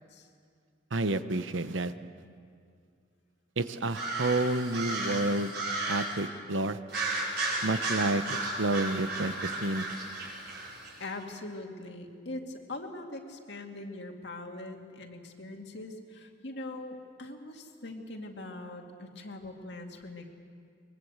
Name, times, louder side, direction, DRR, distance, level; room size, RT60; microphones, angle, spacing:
voice 1, 0.9-1.9 3.6-5.5 5.9-6.8 7.6-9.9, right 2 dB, 85° right, 11 dB, 1.0 m, -30 dB
sound 1, 3.9-6.2 6.9-10.9, right 2 dB, 55° right, 5.4 m, -34 dB
voice 2, 11.0-20.3, left 2 dB, 60° left, 3 dB, 2.3 m, -42 dB
23.0 x 22.0 x 8.1 m, 2.2 s
head